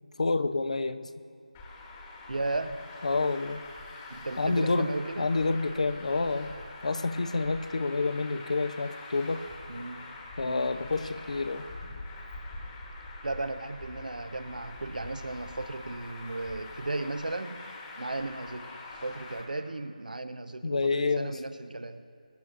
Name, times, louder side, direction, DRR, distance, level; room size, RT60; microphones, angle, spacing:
voice 1, 0.2-1.1 3.0-3.6 4.4-4.9 5.2-6.5 6.8-9.4 10.4-11.7 20.6-21.4, left 3 dB, 55° left, 11 dB, 0.7 m, -28 dB
Traffic noise roadway noise, 1.5-19.4, left 2 dB, 15° left, 1.3 m, -44 dB
voice 2, 2.3-2.8 4.1-5.3 9.7-10.0 10.4-10.7 13.2-17.6 18.0-18.7 19.0-22.0, right 2 dB, 80° right, 10 dB, 1.0 m, -35 dB
23.5 x 10.5 x 2.6 m, 2.4 s
figure-of-eight pair, 170°, 4 cm